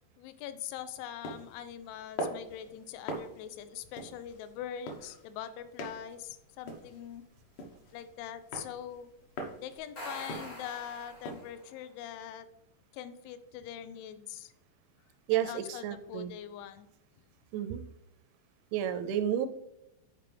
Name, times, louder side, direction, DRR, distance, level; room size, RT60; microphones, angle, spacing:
voice 1, 0.2-7.2 7.9-9.1 9.6-12.5 12.9-14.5 15.3-16.9, left 10 dB, 85° left, 11 dB, 3.0 m, -43 dB
sound 1, 1.2-11.5, equal, 70° left, 2.1 m, -44 dB
sound 2, 9.8-11.7, equal, 50° left, 0.9 m, -44 dB
voice 2, 15.3-16.3 17.5-17.8 18.7-19.5, right 10 dB, 85° right, 10 dB, 2.9 m, -31 dB
11.0 x 4.8 x 3.4 m, 0.87 s
omnidirectional pair, 5.3 m